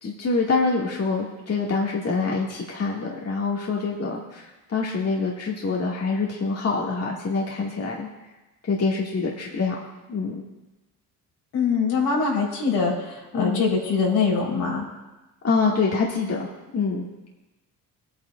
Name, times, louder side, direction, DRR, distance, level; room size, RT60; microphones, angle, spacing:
voice 1, 0.0-8.1 8.6-9.8 10.1-10.4 13.3-13.6 15.4-16.5 16.7-17.1, left 4 dB, 40° left, -3 dB, 2.1 m, -25 dB
voice 2, 11.5-14.8, left 5 dB, 75° left, -3 dB, 4.1 m, -23 dB
18.0 x 9.2 x 2.5 m, 1.1 s
supercardioid pair, 65°, 41 cm